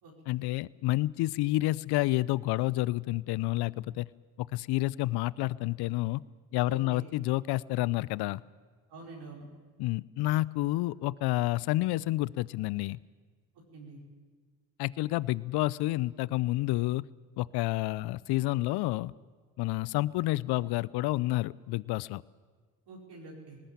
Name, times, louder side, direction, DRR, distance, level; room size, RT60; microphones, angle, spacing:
voice 1, 0.3-4.1 4.4-6.2 6.5-8.4 9.8-13.0 14.8-17.0 17.4-19.1 19.6-22.2, left 18 dB, 65° left, 22 dB, 0.6 m, -29 dB
voice 2, 6.7-7.1 8.9-9.4 13.7-14.0 22.9-23.6, right 3 dB, 65° right, -3 dB, 5.1 m, -46 dB
20.5 x 19.5 x 8.7 m, 1.5 s
hypercardioid pair, 45°, 43 cm